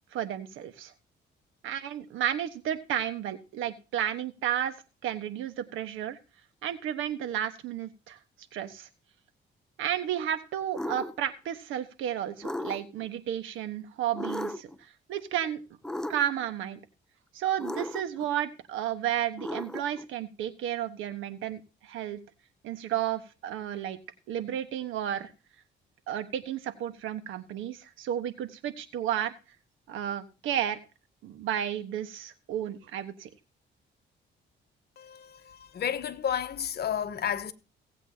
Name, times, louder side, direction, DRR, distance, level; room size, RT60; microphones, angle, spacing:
voice 1, 0.1-0.9 1.6-4.7 5.0-6.2 6.6-8.2 8.5-8.9 9.8-14.7 15.1-15.6 16.1-16.8 17.3-22.2 22.6-24.0 24.3-25.3 26.1-29.3 29.9-30.8 31.2-33.3, right 10 dB, 90° right, 1.2 m, -32 dB
sound 1, 10.7-11.2 12.4-13.1 14.1-14.8 15.8-16.5 17.6-18.3 19.4-20.0, left 1 dB, 5° left, 0.6 m, -35 dB
voice 2, 35.0-37.5, left 9 dB, 55° left, 1.1 m, -32 dB
17.5 x 8.3 x 2.8 m
cardioid pair, 90°, 20 cm